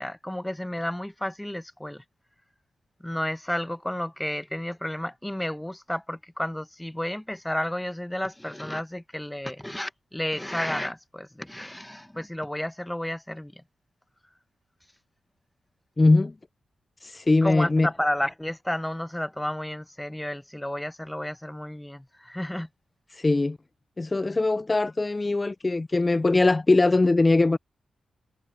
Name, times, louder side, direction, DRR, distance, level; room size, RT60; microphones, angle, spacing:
voice 1, 0.0-2.0 3.0-13.5 17.4-22.7, left 1 dB, 10° left, 1.1 m, -31 dB
voice 2, 16.0-16.3 17.0-17.9 23.1-23.6 24.0-27.6, left 2 dB, 30° left, 0.5 m, -21 dB
supercardioid pair, 45°, 0 cm